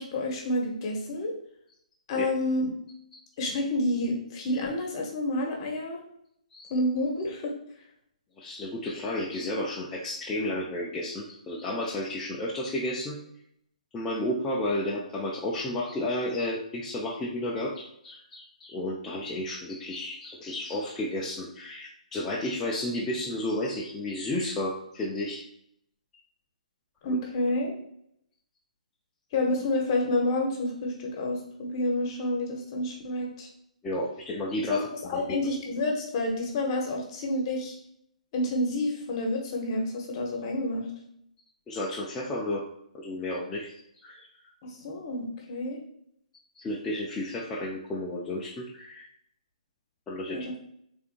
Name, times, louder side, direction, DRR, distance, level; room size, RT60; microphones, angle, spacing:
voice 1, 0.0-1.3 2.1-2.7 3.4-6.0 6.7-7.5 27.0-27.7 29.3-33.5 34.7-37.8 38.3-40.8 44.6-45.8 50.3-50.4, left 1 dB, 35° left, 0 dB, 1.0 m, -29 dB
voice 2, 8.4-13.2 13.9-25.4 27.1-27.2 33.8-34.9 35.1-35.4 41.7-42.6 42.9-44.3 46.6-49.1 50.1-50.4, left 1 dB, 10° left, -5 dB, 0.4 m, -32 dB
3.6 x 3.4 x 2.5 m, 0.74 s
hypercardioid pair, 150°, 4 cm